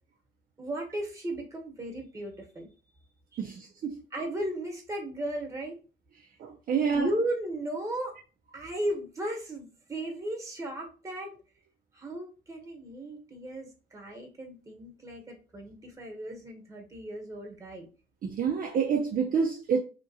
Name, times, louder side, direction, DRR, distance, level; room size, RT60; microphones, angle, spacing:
voice 1, 0.6-2.7 3.3-3.6 4.1-5.8 6.8-8.2 8.5-11.3 11.9-17.9, right 1 dB, 15° right, 1.1 m, -36 dB
voice 2, 3.4-4.0 6.4-7.1 18.2-19.8, right 6 dB, 45° right, 0.4 m, -28 dB
2.8 x 2.4 x 2.7 m
cardioid pair, 90°, 20 cm